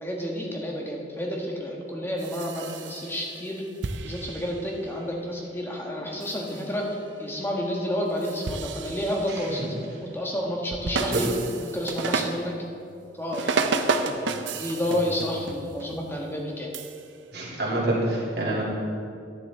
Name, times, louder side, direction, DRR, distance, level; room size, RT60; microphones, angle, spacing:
voice 1, 0.0-3.6 4.0-6.9 7.2-9.7 10.0-11.3 11.6-12.5 13.2-16.7, equal, 15° left, -1 dB, 1.4 m, -30 dB
sound 1, 2.2-3.6 3.8-5.0 6.2-6.8 8.1-9.6 10.7-12.6 13.3-16.4 16.7-17.0, right 4 dB, 85° right, 0.6 m, -32 dB
voice 2, 17.3-18.6, right 1 dB, 60° right, -5 dB, 2.7 m, -27 dB
12.0 x 10.5 x 3.6 m, 2.5 s
head